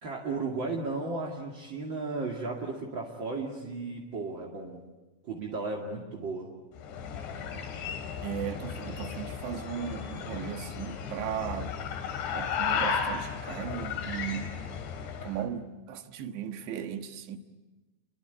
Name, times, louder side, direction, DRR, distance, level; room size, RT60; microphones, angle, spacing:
voice 1, 0.0-4.8 5.2-6.5, right 3 dB, 35° right, 2.1 m, -34 dB
sound 1, 6.8-15.4, left 6 dB, 75° left, 4.5 m, -34 dB
voice 2, 8.2-11.8 12.3-14.5 15.2-17.4, right 9 dB, 75° right, 3.6 m, -37 dB
29.5 x 23.5 x 8.3 m
omnidirectional pair, 5.3 m